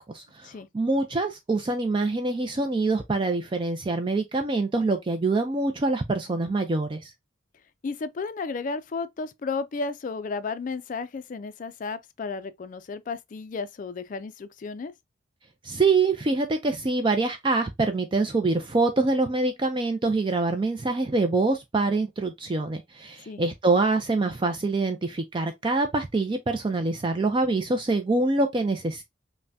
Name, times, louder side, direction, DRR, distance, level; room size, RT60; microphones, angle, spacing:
voice 1, 0.1-7.1 15.6-29.0, right 3 dB, 25° right, 0.4 m, -25 dB
voice 2, 7.8-14.9 23.3-23.4, left 4 dB, 45° left, 0.4 m, -33 dB
5.5 x 2.1 x 2.6 m
head